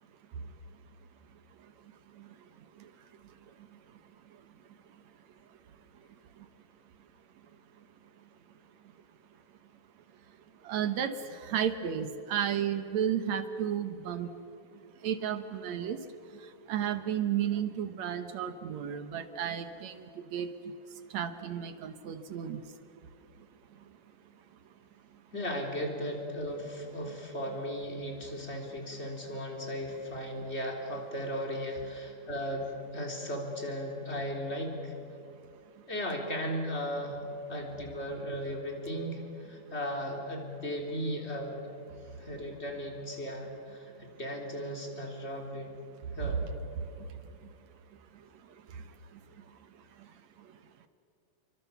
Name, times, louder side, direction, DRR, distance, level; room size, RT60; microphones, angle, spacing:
voice 1, 10.7-14.3 15.0-16.0 16.7-19.9 20.3-20.5 21.1-22.6, right 9 dB, 65° right, 10 dB, 1.9 m, -32 dB
voice 2, 25.3-34.9 35.9-37.2 37.5-41.6 42.2-45.7 46.1-46.5, equal, 20° left, 2 dB, 3.5 m, -36 dB
29.5 x 24.0 x 7.1 m, 2.6 s
omnidirectional pair, 4.2 m